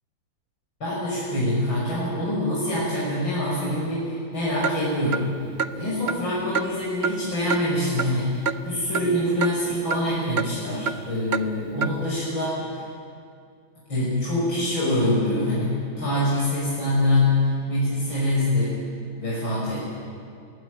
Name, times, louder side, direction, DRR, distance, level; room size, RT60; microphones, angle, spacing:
voice 1, 0.8-12.9 13.9-18.8 19.2-19.9, left 1 dB, 80° left, -7 dB, 7.1 m, -25 dB
Clock, 4.6-4.8 5.1-5.2 5.6-5.7 6.1-6.2 6.5-6.7 7.0-7.1 7.5-7.6 8.0-8.1 8.5-8.6 8.9-9.1 9.4-9.5 9.9-10.0 10.4-10.5 10.9-11.0 11.3-11.4 11.8-11.9, right 6 dB, 55° right, 0.7 m, -26 dB
26.0 x 21.0 x 9.4 m, 2.3 s
omnidirectional pair, 2.1 m